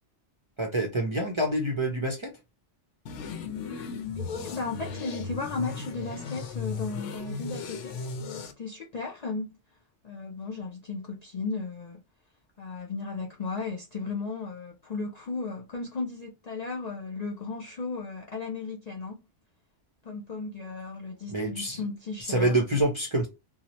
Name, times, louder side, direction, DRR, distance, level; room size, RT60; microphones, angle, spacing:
voice 1, 0.6-2.3 21.3-21.8 22.2-23.3, right 1 dB, 40° right, 0.5 m, -26 dB
sound 1, 3.1-8.5, left 5 dB, 85° left, 0.9 m, -36 dB
voice 2, 4.2-9.5 10.0-12.0 12.6-19.2 20.0-22.8, left 4 dB, 55° left, 0.4 m, -35 dB
2.8 x 2.0 x 2.8 m
omnidirectional pair, 1.2 m